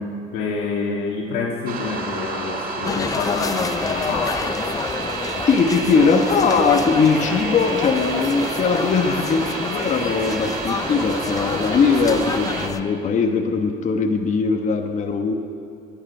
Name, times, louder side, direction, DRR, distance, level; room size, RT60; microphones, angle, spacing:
voice 1, 0.0-4.5, left 4 dB, 90° left, -2 dB, 1.6 m, -27 dB
sound 1, 1.7-12.7, right 4 dB, 60° right, 1.8 m, -29 dB
sound 2, 2.8-12.8, left 5 dB, 20° left, 0.3 m, -29 dB
voice 2, 5.5-15.3, left 5 dB, 45° left, 4 dB, 1.2 m, -20 dB
19.5 x 10.5 x 5.5 m, 2.6 s
cardioid pair, 110°, 17 cm